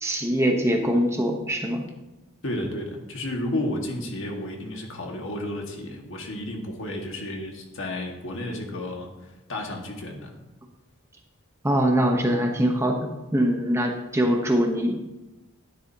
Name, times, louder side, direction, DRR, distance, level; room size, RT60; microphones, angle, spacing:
voice 1, 0.0-1.8 11.6-15.1, equal, 10° right, 2 dB, 0.9 m, -23 dB
voice 2, 2.4-10.4, left 1 dB, 60° left, 1 dB, 1.7 m, -32 dB
12.0 x 10.0 x 2.8 m, 1.0 s
head